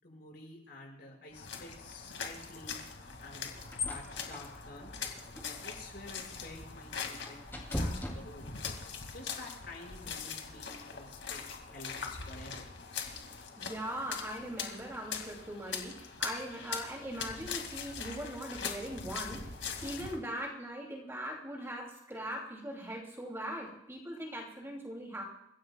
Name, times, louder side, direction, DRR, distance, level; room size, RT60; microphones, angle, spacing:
voice 1, 0.0-2.8 3.2-3.5 3.9-4.9 5.4-7.4 7.8-8.5 9.1-11.4 11.7-12.7, left 2 dB, 55° left, -1 dB, 5.7 m, -49 dB
sound 1, 1.3-20.2, left 6 dB, 80° left, 2.2 m, -42 dB
sound 2, 3.1-8.8, left 1 dB, 10° left, 2.6 m, -41 dB
voice 2, 13.6-19.4 19.8-25.2, right 1 dB, 15° right, -1 dB, 2.6 m, -40 dB
29.0 x 16.0 x 2.3 m, 0.80 s
head